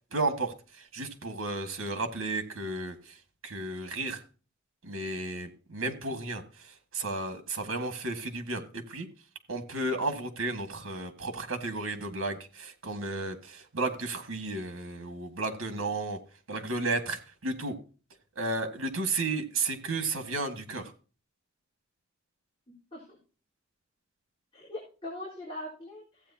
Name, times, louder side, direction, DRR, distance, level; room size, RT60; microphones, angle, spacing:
voice 1, 0.1-0.5 0.9-3.0 3.4-4.2 4.8-6.4 6.9-9.1 9.5-16.2 16.5-17.8 18.4-20.9, right 2 dB, 85° right, 1.7 m, -33 dB
voice 2, 22.7-23.2 24.5-26.3, left 1 dB, 30° left, 4.0 m, -42 dB
15.0 x 8.7 x 2.8 m
head